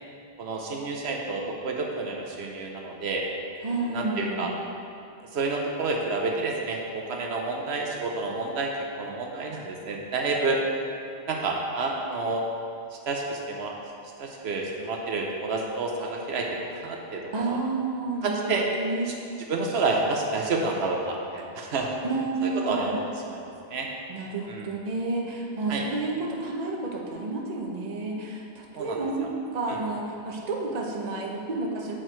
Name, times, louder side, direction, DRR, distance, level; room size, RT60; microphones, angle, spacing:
voice 1, 0.4-3.2 3.8-4.5 5.3-8.7 9.0-10.6 11.3-12.5 12.9-13.7 14.2-17.6 18.2-18.7 19.1-19.2 19.5-21.9 22.4-23.9 24.5-24.7 25.7-25.9 28.8-29.3 29.7-29.8, right 3 dB, 75° right, 0 dB, 0.9 m, -29 dB
voice 2, 3.6-4.5 17.3-19.3 22.0-23.0 24.1-31.9, right 3 dB, 40° right, -1 dB, 0.8 m, -30 dB
7.5 x 4.6 x 4.5 m, 2.5 s
omnidirectional pair, 1.1 m